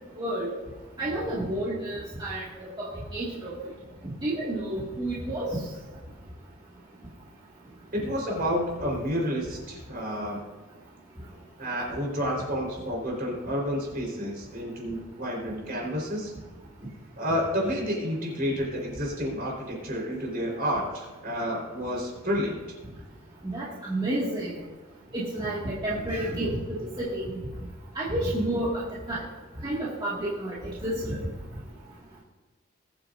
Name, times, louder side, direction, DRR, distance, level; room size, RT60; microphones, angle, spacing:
voice 1, 0.2-0.5 1.0-3.5 4.2-5.5 23.4-24.6 25.1-27.2 27.9-28.8 29.1-29.2 29.6-30.5 30.8-31.2, right 1 dB, 25° right, -8 dB, 2.1 m, -30 dB
voice 2, 7.9-10.4 11.6-16.3 17.2-22.5, equal, 45° right, -1 dB, 4.3 m, -30 dB
20.5 x 8.8 x 2.6 m, 1.3 s
head